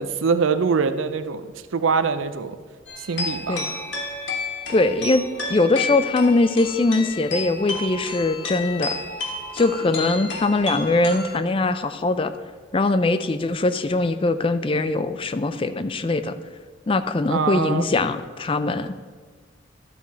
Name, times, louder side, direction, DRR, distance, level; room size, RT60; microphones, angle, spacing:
voice 1, 0.0-2.6 3.0-3.8 17.3-17.9, right 5 dB, 75° right, 11 dB, 0.5 m, -24 dB
sound 1, 2.9-11.4, left 3 dB, 60° left, 1.5 m, -31 dB
voice 2, 4.7-9.0 9.5-12.3 12.7-16.4 16.9-18.9, left 2 dB, 25° left, 12 dB, 0.4 m, -21 dB
12.5 x 4.6 x 5.6 m, 1.5 s
head